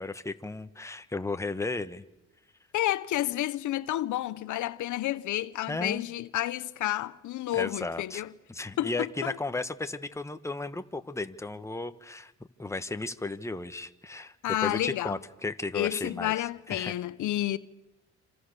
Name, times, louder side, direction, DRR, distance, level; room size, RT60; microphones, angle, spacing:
voice 1, 0.0-2.0 5.7-6.0 7.5-8.2 8.5-12.3 12.6-14.3 14.6-16.9, left 3 dB, 10° left, 1.3 m, -34 dB
voice 2, 2.7-8.3 8.8-9.4 14.4-15.2 15.7-17.6, left 14 dB, 75° left, 0.9 m, -30 dB
27.5 x 27.0 x 6.8 m
cardioid pair, 90°, 30 cm